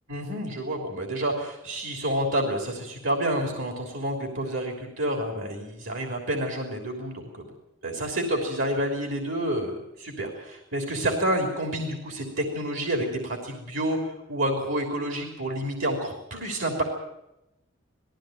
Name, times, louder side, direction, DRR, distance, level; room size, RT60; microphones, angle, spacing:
voice 1, 0.1-7.4 7.8-16.8, right 1 dB, 85° right, 2 dB, 3.4 m, -29 dB
19.5 x 15.5 x 9.3 m, 0.88 s
head